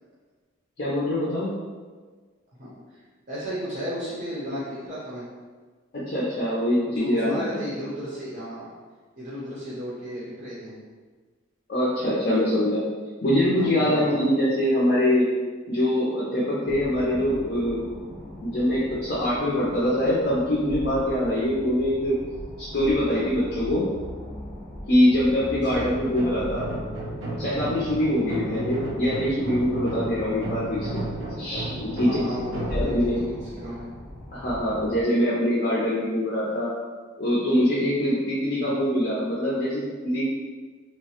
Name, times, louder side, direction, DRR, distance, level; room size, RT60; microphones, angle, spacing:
voice 1, 0.8-1.5 5.9-7.7 11.7-12.8 13.2-15.3 15.7-17.8 18.4-22.2 22.6-23.9 24.9-26.7 27.4-31.1 31.4-32.2 32.4-33.2 34.3-36.7 37.2-40.2, left 1 dB, 50° left, -7 dB, 0.5 m, -24 dB
voice 2, 2.6-3.0 3.3-5.3 6.9-8.7 9.2-10.7 13.6-14.3 25.6-25.8 28.4-28.7 32.0-33.3 33.6-33.9 38.6-38.8, equal, 45° right, -8 dB, 0.6 m, -34 dB
sound 1, 16.6-35.0, equal, 10° left, 0.6 m, -39 dB
sound 2, 25.8-34.5, right 1 dB, 90° right, 0.7 m, -34 dB
2.9 x 2.1 x 2.8 m, 1.4 s
head